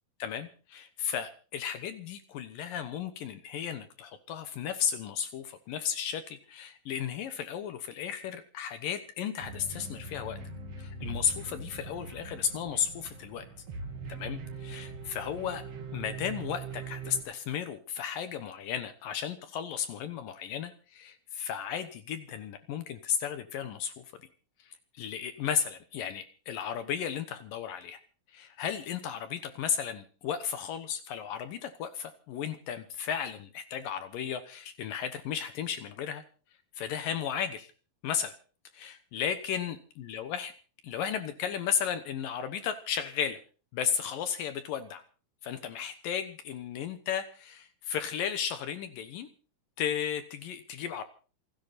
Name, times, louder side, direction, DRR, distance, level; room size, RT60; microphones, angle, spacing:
voice 1, 0.2-10.4 10.8-13.5 14.1-15.6 15.9-24.1 24.6-28.0 28.3-36.2 36.7-37.7 38.0-38.3 38.7-40.5 40.8-43.4 43.7-45.0 45.4-49.3 49.8-51.0, left 8 dB, 70° left, 10 dB, 2.6 m, -34 dB
sound 1, 9.4-17.2, right 4 dB, 45° right, 3.0 m, -42 dB
28.0 x 10.5 x 4.2 m, 0.37 s
omnidirectional pair, 4.5 m